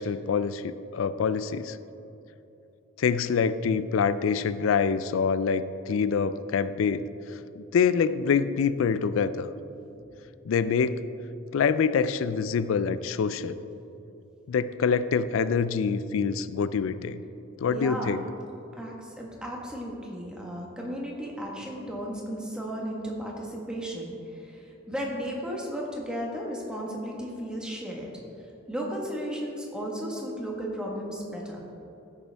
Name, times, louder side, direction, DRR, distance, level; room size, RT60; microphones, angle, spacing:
voice 1, 0.0-1.8 3.0-7.1 7.6-9.5 10.5-11.0 11.5-13.6 14.5-17.2 17.6-18.2, left 6 dB, 75° left, 14 dB, 0.3 m, -25 dB
voice 2, 17.7-18.2 18.7-28.1 28.7-31.6, equal, 5° right, -2 dB, 1.3 m, -34 dB
14.5 x 6.8 x 3.4 m, 2.9 s
head